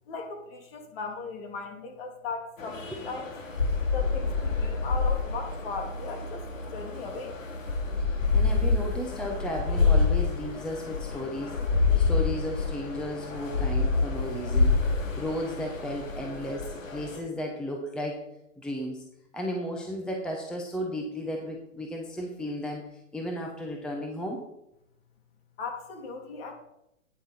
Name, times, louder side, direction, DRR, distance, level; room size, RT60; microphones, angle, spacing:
voice 1, 0.1-3.3 3.9-7.4 25.6-26.5, left 4 dB, 50° left, 3 dB, 2.7 m, -37 dB
sound 1, 2.6-17.2, left 4 dB, 80° left, 2.5 m, -27 dB
voice 2, 8.0-14.8 15.2-18.2 18.6-19.0 19.3-22.8 23.1-24.4, equal, ahead, 2 dB, 0.7 m, -34 dB
11.0 x 9.4 x 4.1 m, 0.83 s
hypercardioid pair, 140°, 38 cm